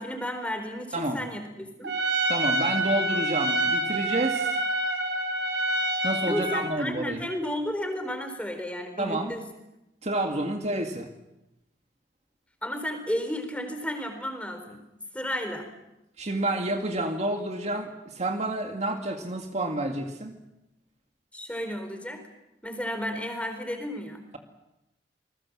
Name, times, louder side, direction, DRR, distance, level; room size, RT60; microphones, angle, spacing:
voice 1, 0.0-1.9 6.2-9.5 12.6-14.8 15.1-15.7 21.3-22.2 22.6-24.2, equal, 5° left, 6 dB, 4.0 m, -33 dB
Trumpet, 1.8-6.7, right 1 dB, 80° right, 3.9 m, -27 dB
voice 2, 2.3-4.6 6.0-7.2 9.0-9.3 10.0-11.1 16.2-20.4, right 2 dB, 40° right, 4 dB, 2.1 m, -29 dB
28.0 x 20.5 x 7.5 m, 0.92 s
head